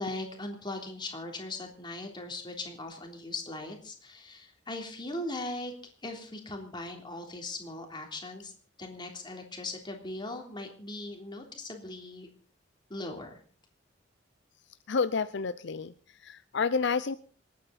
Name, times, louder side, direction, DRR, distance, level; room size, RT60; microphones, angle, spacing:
voice 1, 0.0-5.7 6.0-8.5 8.8-12.3 12.9-13.4, left 2 dB, 25° left, 2 dB, 3.4 m, -39 dB
voice 2, 14.9-15.9 16.2-17.2, left 5 dB, 65° left, 13 dB, 0.6 m, -29 dB
27.0 x 9.5 x 4.2 m, 0.43 s
head